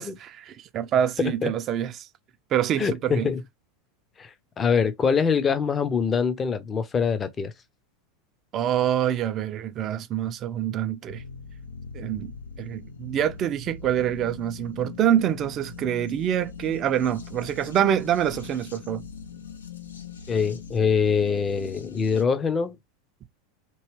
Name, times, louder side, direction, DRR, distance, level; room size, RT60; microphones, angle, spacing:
voice 1, 0.0-2.1 2.5-3.3 8.5-11.2 11.9-12.3 12.6-19.0, right 10 dB, 35° right, 0.4 m, -26 dB
voice 2, 1.2-1.5 2.8-3.4 4.2-4.3 4.6-7.5 20.3-22.8, left 6 dB, 25° left, 0.6 m, -24 dB
sound 1, 11.1-22.2, left 6 dB, 75° left, 0.5 m, -41 dB
3.0 x 2.8 x 3.1 m
figure-of-eight pair, 85°, 0 cm